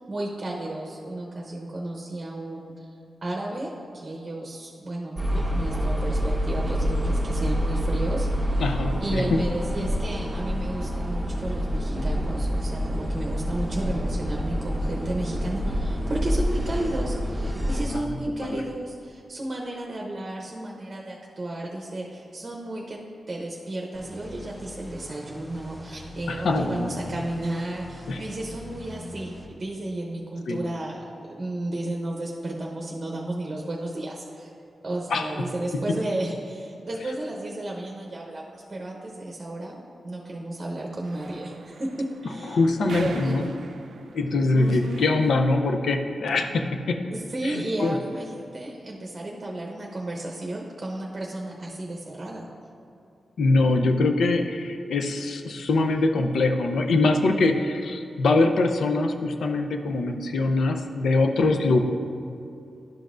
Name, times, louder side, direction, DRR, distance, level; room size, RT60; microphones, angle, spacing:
voice 1, 0.1-2.9 3.2-5.2 5.5-8.3 9.0-23.0 23.3-34.5 34.8-39.8 40.0-43.5 44.5-45.0 47.1-52.5, right 1 dB, 35° right, -1 dB, 0.8 m, -33 dB
sound 1, 5.2-17.9, equal, 10° right, 1.0 m, -27 dB
voice 2, 8.6-9.4 9.8-9.9 17.9-18.0 18.4-18.6 26.3-27.1 28.1-28.2 30.5-30.6 35.1-35.3 42.5-43.5 44.0-47.0 47.4-48.0 53.4-61.8, left 2 dB, 80° left, 5 dB, 0.5 m, -23 dB
sound 2, 23.9-29.5, left 1 dB, 15° left, 0.9 m, -43 dB
sound 3, 41.0-45.6, right 4 dB, 80° right, 0.4 m, -43 dB
11.5 x 5.3 x 2.5 m, 2.6 s
cardioid pair, 85°, 0 cm